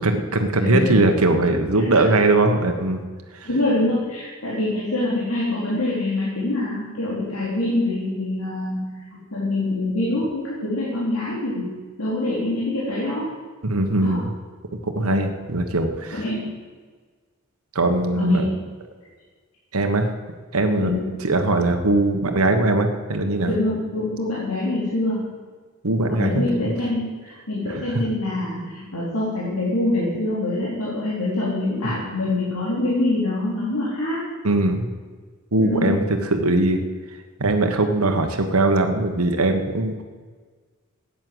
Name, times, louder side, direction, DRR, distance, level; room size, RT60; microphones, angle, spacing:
voice 1, 0.0-3.0 3.3-3.5 13.6-14.3 14.8-16.2 17.7-18.4 19.7-20.1 20.5-20.9 21.2-23.5 25.8-26.4 27.7-27.9 34.4-34.9 35.5-36.8 37.4-40.0, right 2 dB, 75° right, 5 dB, 1.4 m, -20 dB
voice 2, 0.6-1.0 1.8-2.2 3.4-9.0 9.3-13.3 14.0-14.2 15.0-15.1 16.1-16.5 18.1-18.5 20.8-21.1 23.4-25.2 26.1-34.2 35.6-35.9, left 2 dB, 90° left, -7 dB, 3.9 m, -25 dB
14.0 x 9.7 x 7.9 m, 1.5 s
head